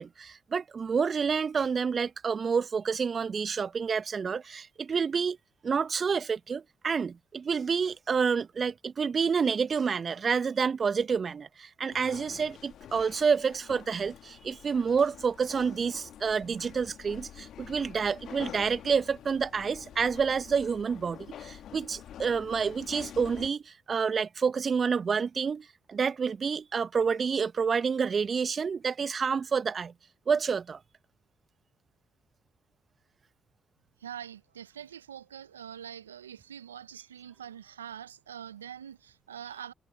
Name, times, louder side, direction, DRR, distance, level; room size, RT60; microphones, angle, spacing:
voice 1, 0.0-5.4 5.6-29.9 30.3-30.8, right 6 dB, 45° right, 1.7 m, -28 dB
sound 1, 11.9-23.5, left 10 dB, 60° left, 1.8 m, -47 dB
voice 2, 34.0-39.7, right 9 dB, 90° right, 0.9 m, -44 dB
figure-of-eight pair, 40°, 0 cm